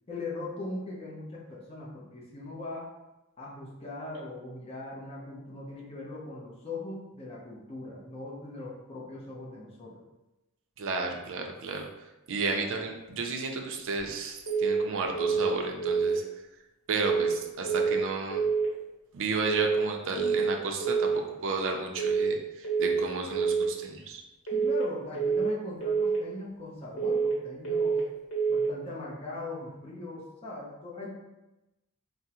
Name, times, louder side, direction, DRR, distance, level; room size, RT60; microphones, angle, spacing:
voice 1, 0.1-2.9 3.4-10.0 24.5-28.0 28.5-31.1, left 2 dB, 25° left, -5 dB, 0.6 m, -40 dB
voice 2, 10.8-11.9 12.3-16.2 16.9-18.4 19.1-21.1 21.4-24.2, right 3 dB, 60° right, 3 dB, 0.4 m, -32 dB
sound 1, 14.5-14.9 15.1-15.5 15.8-16.2 17.0-17.4 17.6-18.0 18.3-18.7 19.5-19.9 20.1-20.5 20.8-21.2 22.0-22.4 22.6-23.0 23.3-23.7 24.5-24.9 25.1-25.5 25.8-26.2 27.0-27.4 27.6-28.0 28.3-28.7, right 5 dB, 70° left, 0.9 m, -27 dB
3.4 x 2.0 x 2.8 m, 1.0 s
head